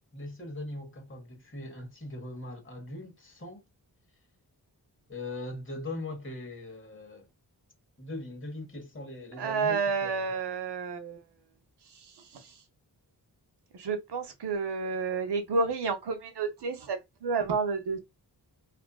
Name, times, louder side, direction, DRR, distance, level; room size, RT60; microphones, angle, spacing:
voice 1, 0.1-3.6 5.1-7.3 8.0-10.3, left 2 dB, 30° left, 1.0 m, -40 dB
voice 2, 9.3-11.2 11.9-12.6 13.7-18.0, right 4 dB, 85° right, 0.7 m, -30 dB
2.4 x 2.4 x 2.3 m
wide cardioid pair, 80°, 40 cm